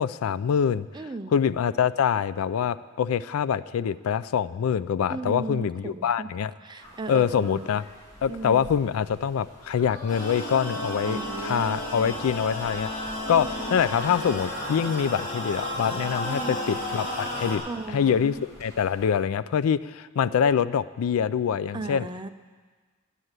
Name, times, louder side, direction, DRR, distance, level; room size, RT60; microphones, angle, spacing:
voice 1, 0.0-0.9 1.3-6.5 7.1-7.8 8.2-17.6 17.9-22.1, left 7 dB, 70° left, 17 dB, 0.3 m, -25 dB
voice 2, 0.9-1.4 5.1-6.3 6.6-7.8 8.3-8.7 11.1-12.1 13.2-13.8 16.2-16.6 17.6-18.4 21.7-22.3, right 3 dB, 20° right, 9 dB, 0.5 m, -36 dB
sound 1, 6.8-19.1, equal, 15° left, 3.2 m, -47 dB
sound 2, 10.1-17.6, left 1 dB, 35° left, 2.5 m, -33 dB
9.8 x 9.0 x 8.0 m, 1.4 s
head